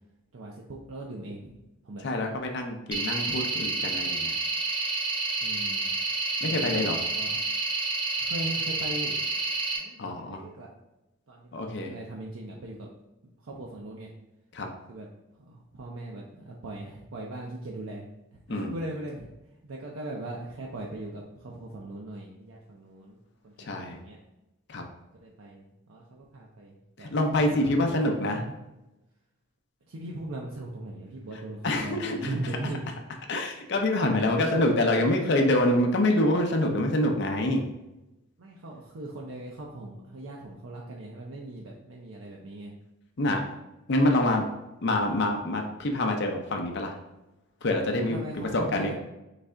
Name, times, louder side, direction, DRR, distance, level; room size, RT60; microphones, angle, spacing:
voice 1, 0.3-1.6 1.8-2.0 5.4-5.9 6.4-7.4 8.2-9.2 9.7-10.7 11.3-12.9 13.4-14.1 14.9-15.1 15.4-18.0 18.3-19.3 19.6-24.2 25.2-27.1 27.4-28.6 29.9-32.9 34.3-34.6 38.4-42.7 48.0-48.9, right 1 dB, 70° right, -2 dB, 0.6 m, -39 dB
voice 2, 2.0-4.3 6.4-7.0 10.0-10.4 11.5-11.9 14.5-14.7 18.5-18.7 23.6-24.0 24.7-24.8 27.0-28.4 31.6-32.4 33.3-37.7 43.2-43.4 43.9-44.4 44.8-47.0 47.6-48.2 48.5-48.9, left 1 dB, 50° left, 2 dB, 0.5 m, -26 dB
sound 1, 2.9-9.8, right 3 dB, 25° right, 0.7 m, -29 dB
4.0 x 3.3 x 3.6 m, 0.96 s
head